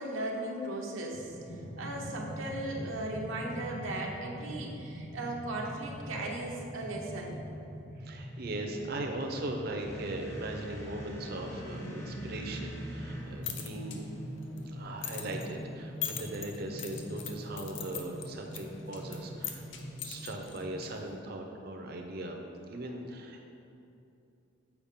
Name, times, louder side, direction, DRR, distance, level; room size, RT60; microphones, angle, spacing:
voice 1, 0.0-1.4 1.8-7.4, right 1 dB, 85° right, -1 dB, 0.8 m, -37 dB
sound 1, 1.1-20.3, equal, 40° left, 0.9 m, -43 dB
voice 2, 8.0-14.0 14.7-22.4 22.7-23.5, right 1 dB, 50° right, 2 dB, 0.6 m, -39 dB
sound 2, 9.8-13.7, equal, 15° left, 0.6 m, -47 dB
sound 3, 13.2-21.2, left 9 dB, 65° left, 0.5 m, -43 dB
7.1 x 4.7 x 3.6 m, 2.7 s
head